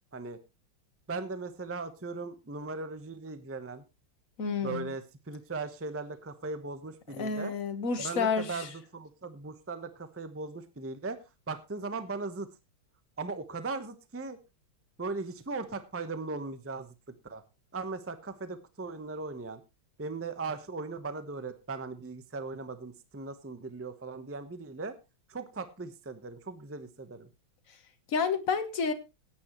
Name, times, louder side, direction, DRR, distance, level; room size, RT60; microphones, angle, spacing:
voice 1, 1.1-3.8 4.6-7.5 8.0-11.2 11.5-12.5 13.2-14.4 15.0-16.9 17.2-17.4 17.7-19.6 20.0-25.0 25.3-27.3, right 3 dB, 15° right, 11 dB, 0.6 m, -38 dB
voice 2, 4.4-4.9 7.2-8.7 28.1-28.9, left 5 dB, 45° left, 9 dB, 1.7 m, -30 dB
16.5 x 9.5 x 3.1 m, 0.26 s
omnidirectional pair, 2.2 m